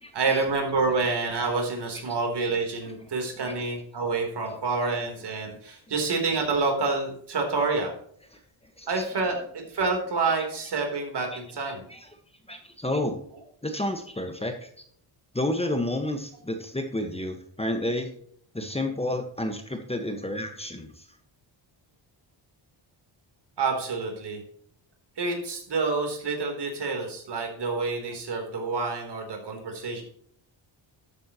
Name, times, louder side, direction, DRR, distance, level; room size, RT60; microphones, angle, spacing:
voice 1, 0.1-7.9 8.9-11.8 23.6-24.4 25.2-30.0, right 4 dB, 60° right, 3 dB, 3.8 m, -28 dB
voice 2, 12.5-13.2 13.6-14.7 15.3-18.1 18.5-21.0, left 1 dB, 15° left, 5 dB, 1.4 m, -30 dB
12.5 x 9.2 x 3.1 m, 0.62 s
cardioid pair, 105°, 47 cm